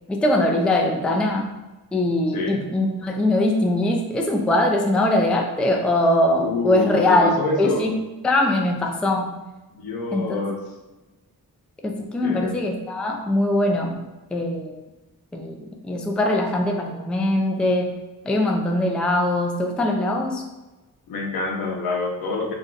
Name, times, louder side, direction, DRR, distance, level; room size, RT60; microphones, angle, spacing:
voice 1, 0.1-1.6 1.9-7.9 8.2-9.4 10.1-10.4 11.8-14.1 14.3-14.8 15.3-20.4, left 1 dB, 5° left, 1 dB, 0.3 m, -22 dB
voice 2, 6.4-7.9 9.7-10.6 12.2-12.6 21.1-22.5, left 3 dB, 75° left, 1 dB, 0.7 m, -27 dB
2.6 x 2.3 x 3.8 m, 1.1 s
cardioid pair, 95°, 36 cm